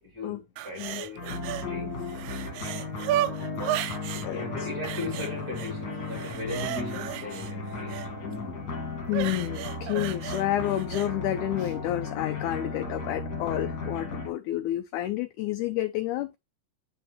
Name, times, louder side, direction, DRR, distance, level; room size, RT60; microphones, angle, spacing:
voice 1, 0.0-2.2 2.5-2.7 4.3-8.1 8.4-8.7, left 2 dB, 30° right, 2.7 m, -38 dB
sound 1, 0.6-1.7 2.0-4.3 4.8-5.7 6.1-8.1 9.1-11.1 11.6-11.7, right 13 dB, 85° right, 1.7 m, -34 dB
sound 2, 1.2-14.3, left 3 dB, 40° left, 1.6 m, -35 dB
voice 2, 4.2-4.7 9.1-16.4, left 13 dB, 85° left, 1.8 m, -30 dB
10.0 x 3.4 x 3.0 m
omnidirectional pair, 4.0 m